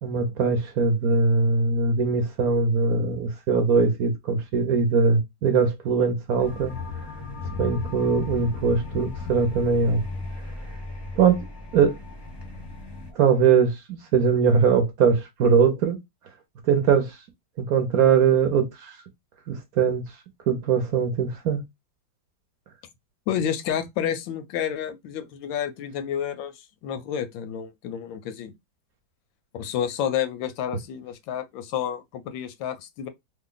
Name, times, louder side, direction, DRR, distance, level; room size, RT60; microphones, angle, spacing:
voice 1, 0.0-6.7 7.6-10.0 11.2-11.4 11.7-12.0 13.1-16.0 16.7-17.1 17.6-19.0 19.5-20.0 20.5-21.6, right 5 dB, 60° right, 1.0 m, -21 dB
sound 1, 6.4-13.1, left 3 dB, 25° left, 0.6 m, -35 dB
voice 2, 23.3-26.5 26.8-28.5 29.5-33.1, left 9 dB, 90° left, 1.4 m, -30 dB
3.3 x 2.2 x 3.7 m
omnidirectional pair, 2.0 m